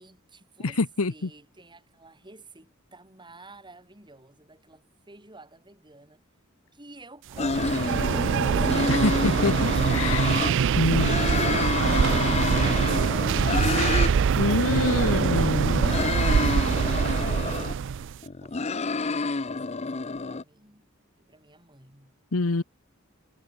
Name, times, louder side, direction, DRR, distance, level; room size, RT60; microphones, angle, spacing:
voice 1, 0.0-0.8 1.1-6.2 6.7-9.8 18.4-19.0 19.4-20.9 21.2-22.2, right 2 dB, 20° right, 8.0 m, -50 dB
voice 2, 0.6-1.3 8.9-9.5 9.9-10.3 10.8-11.1 11.9-12.0 14.4-15.8 22.3-22.6, left 3 dB, 85° left, 1.0 m, -25 dB
sound 1, 7.3-18.2, right 6 dB, 60° right, 0.4 m, -24 dB
sound 2, 7.4-10.5 10.9-14.1 14.4-17.7 18.2-20.4, left 3 dB, 30° left, 0.7 m, -28 dB
head